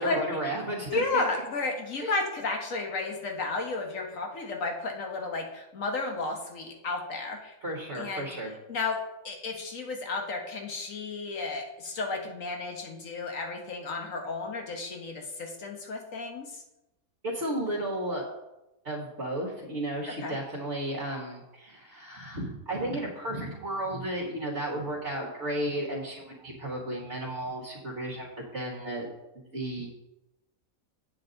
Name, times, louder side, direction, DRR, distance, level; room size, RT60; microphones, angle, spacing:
voice 1, 0.0-1.0 2.0-2.1 7.6-8.5 17.2-18.2 18.9-29.1 29.5-29.9, right 1 dB, 50° right, -3 dB, 1.6 m, -33 dB
voice 2, 0.9-7.5 7.9-8.3 8.7-9.0 9.2-16.6 20.1-20.4, left 3 dB, 60° left, 2 dB, 1.7 m, -33 dB
8.4 x 7.7 x 3.9 m, 0.96 s
omnidirectional pair, 1.5 m